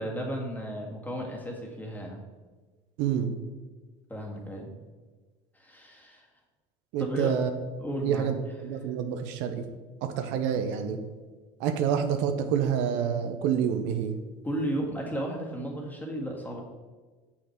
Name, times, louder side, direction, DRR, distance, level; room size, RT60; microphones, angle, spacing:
voice 1, 0.0-2.2 4.1-4.7 5.6-6.3 7.0-7.3 7.8-8.3 14.4-16.6, equal, 10° left, -1 dB, 1.8 m, -34 dB
voice 2, 3.0-3.3 6.9-7.5 8.0-9.7 10.0-11.0 11.6-14.1, right 8 dB, 70° right, 7 dB, 0.7 m, -28 dB
6.5 x 5.8 x 4.5 m, 1.4 s
supercardioid pair, 95°, 19 cm